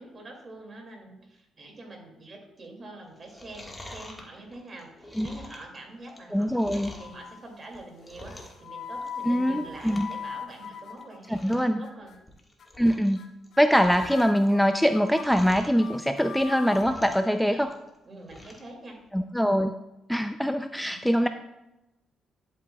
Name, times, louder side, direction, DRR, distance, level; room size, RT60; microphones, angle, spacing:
voice 1, 0.0-12.1 17.3-17.7 18.0-19.0 20.8-21.3, right 2 dB, 40° right, 1 dB, 2.3 m, -45 dB
Chewing mastication, 3.2-7.1 7.6-8.7 8.9-9.3 9.6-10.2 10.4-10.5 11.0-11.1 11.3-11.7 12.1-13.2 13.4-15.8 16.3-17.3 17.6-18.7 19.1-19.2, left 1 dB, 15° left, 1.5 m, -46 dB
sound 1, 6.0-6.6 7.0-7.5 8.2-11.5 11.8-12.2 12.6-12.9 13.2-13.3 13.5-13.6 13.9-16.9, left 6 dB, 65° left, 0.8 m, -41 dB
voice 2, 6.3-6.9 9.3-10.1 11.3-11.8 12.8-13.2 13.6-17.7 19.1-19.8 20.1-21.3, equal, ahead, 8 dB, 0.4 m, -23 dB
10.5 x 8.2 x 2.3 m, 0.92 s
cardioid pair, 90°, 0 cm